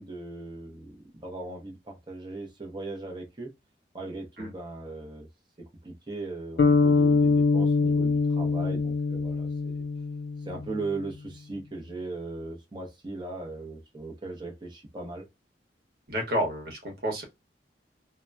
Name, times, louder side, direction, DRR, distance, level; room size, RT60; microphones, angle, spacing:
voice 1, 0.0-3.5 3.9-5.3 5.8-9.8 10.4-15.3, right 2 dB, 25° right, 0.8 m, -38 dB
sound 1, 6.6-10.9, left 4 dB, 65° left, 0.4 m, -24 dB
voice 2, 16.1-17.2, equal, 60° right, 1.2 m, -30 dB
2.8 x 2.1 x 2.4 m
head